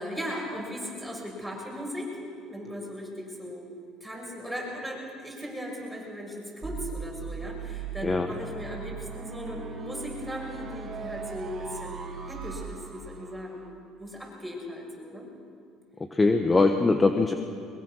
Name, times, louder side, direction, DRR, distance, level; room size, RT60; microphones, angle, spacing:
voice 1, 0.0-2.2 2.5-3.7 4.0-13.6 14.0-15.3, equal, ahead, -3 dB, 6.7 m, -37 dB
sound 1, 6.6-13.6, right 5 dB, 40° right, 3.0 m, -39 dB
voice 2, 16.1-17.4, left 3 dB, 20° left, 6 dB, 1.2 m, -22 dB
22.0 x 21.5 x 6.4 m, 2.3 s
cardioid pair, 105°, 0 cm